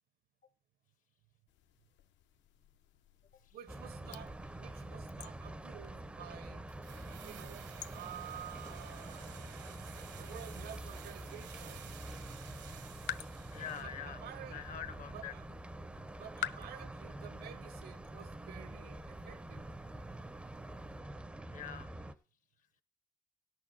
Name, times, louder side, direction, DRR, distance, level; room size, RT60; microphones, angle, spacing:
sound 1, 1.5-21.0, left 12 dB, 90° left, 0.6 m, -51 dB
voice 1, 3.5-9.8 10.2-11.9 13.8-14.7 15.1-15.5 16.2-19.7, right 11 dB, 60° right, 0.6 m, -51 dB
sound 2, 3.7-22.1, right 1 dB, 5° right, 0.4 m, -46 dB
sound 3, 6.7-14.0 14.2-14.3, right 10 dB, 80° right, 1.1 m, -54 dB
voice 2, 13.5-14.2 14.5-15.3 21.5-21.9, left 9 dB, 45° left, 0.6 m, -44 dB
17.5 x 6.4 x 3.9 m
cardioid pair, 180°, 18 cm